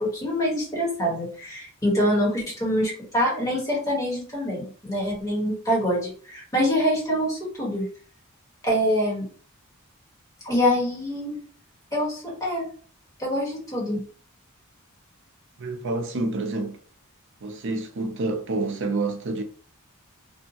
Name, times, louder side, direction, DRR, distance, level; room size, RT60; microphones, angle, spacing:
voice 1, 0.0-7.9 8.6-9.2 10.4-11.4 11.9-12.6 13.2-14.0, equal, 15° left, 1.1 m, -25 dB
voice 2, 15.6-16.8 17.4-19.4, right 2 dB, 55° right, 0.5 m, -28 dB
2.6 x 2.1 x 2.7 m
head